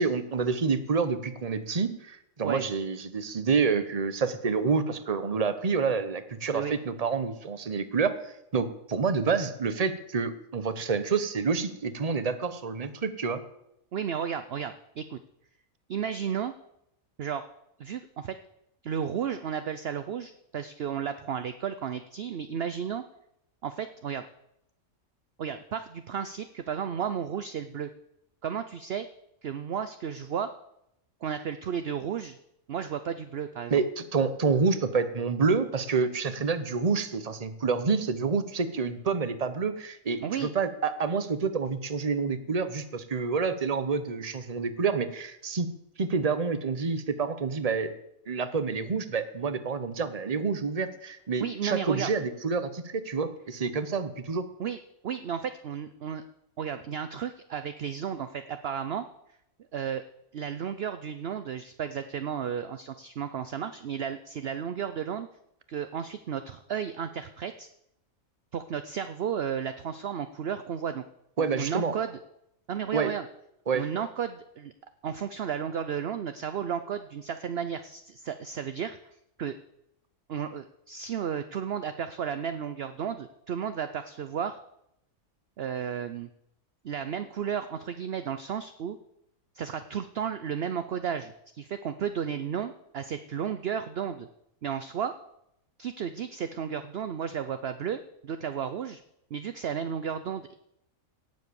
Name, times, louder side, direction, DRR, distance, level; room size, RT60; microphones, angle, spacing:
voice 1, 0.0-13.4 33.7-47.9 48.3-54.5 71.4-71.9 72.9-73.1 73.7-73.9, right 5 dB, 30° right, 11 dB, 1.0 m, -28 dB
voice 2, 13.9-15.2 15.9-16.5 17.2-17.4 17.8-18.3 18.8-23.0 23.6-24.2 25.4-27.9 28.4-29.1 29.4-30.5 31.2-32.4 32.7-33.8 40.2-40.5 51.4-52.1 54.6-54.8 55.0-56.2 56.6-59.0 59.7-60.0 60.3-65.3 65.7-67.7 68.5-71.0 71.4-72.2 72.7-73.2 73.7-74.7 75.0-79.0 79.4-79.6 80.3-84.6 85.6-86.3 86.8-89.0 89.5-94.3 94.6-95.1 95.8-99.0 99.3-100.5, right 8 dB, 55° right, 10 dB, 0.8 m, -33 dB
17.5 x 7.6 x 7.0 m, 0.78 s
omnidirectional pair, 1.4 m